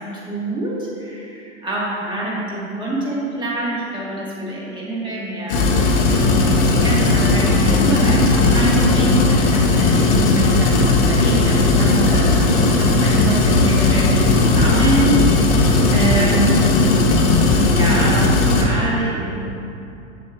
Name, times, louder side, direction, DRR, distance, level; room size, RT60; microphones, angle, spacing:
voice 1, 0.0-17.0 17.6-19.3, right 1 dB, 10° right, -6 dB, 1.4 m, -25 dB
sound 1, 5.5-18.6, left 2 dB, 60° left, 1.2 m, -16 dB
7.6 x 7.1 x 2.3 m, 2.7 s
hypercardioid pair, 135°, 40 cm